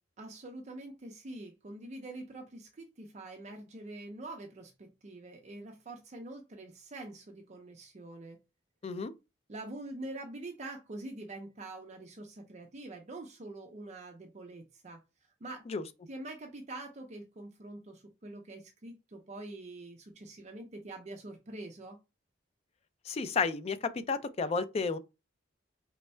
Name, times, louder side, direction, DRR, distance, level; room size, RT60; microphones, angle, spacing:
voice 1, 0.2-8.4 9.5-15.6 16.1-22.0, right 2 dB, 35° right, 0.5 m, -45 dB
voice 2, 23.1-25.0, left 4 dB, 30° left, 0.3 m, -32 dB
3.4 x 2.1 x 4.2 m
head